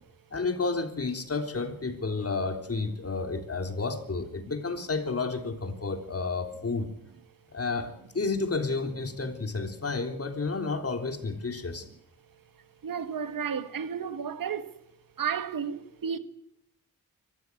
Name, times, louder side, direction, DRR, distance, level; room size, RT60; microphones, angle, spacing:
voice 1, 0.3-6.9 7.5-11.9, left 3 dB, 45° left, 3.5 m, -31 dB
voice 2, 12.8-14.7 15.2-16.2, right 7 dB, 75° right, 1.6 m, -32 dB
24.5 x 14.5 x 8.5 m
cardioid pair, 60°, 34 cm